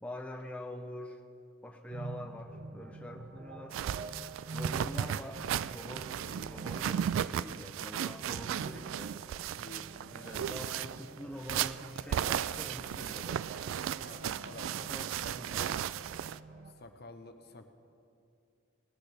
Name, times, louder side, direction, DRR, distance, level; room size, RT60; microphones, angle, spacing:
voice 1, 0.0-1.2 1.6-3.8 4.5-9.2 10.1-13.5 14.8-15.9, left 1 dB, 5° left, 3 dB, 0.6 m, -45 dB
sound 1, 1.9-16.7, right 2 dB, 45° right, 0.8 m, -48 dB
sound 2, 3.7-16.4, right 9 dB, 90° right, 0.3 m, -35 dB
voice 2, 9.6-9.9 10.2-10.6 14.0-14.7 15.2-15.4 16.7-17.7, left 2 dB, 55° left, 6 dB, 0.9 m, -49 dB
19.0 x 18.5 x 3.4 m, 2.6 s
head